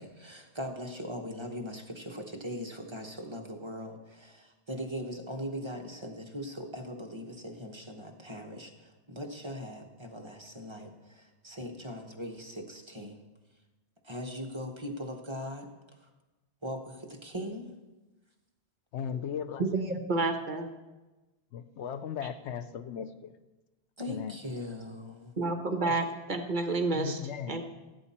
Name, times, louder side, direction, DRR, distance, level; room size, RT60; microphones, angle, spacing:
voice 1, 0.0-13.2 14.0-15.7 16.0-16.1 16.6-17.7 24.0-25.3, equal, 25° right, 2 dB, 1.1 m, -40 dB
voice 2, 18.9-19.6 21.5-23.3 24.1-24.4 25.8-26.0 26.9-27.6, left 8 dB, 85° left, 12 dB, 1.0 m, -37 dB
voice 3, 19.6-20.7 25.4-27.2 27.5-27.6, right 3 dB, 45° right, 6 dB, 1.1 m, -30 dB
15.5 x 8.3 x 4.3 m, 1.1 s
omnidirectional pair, 1.1 m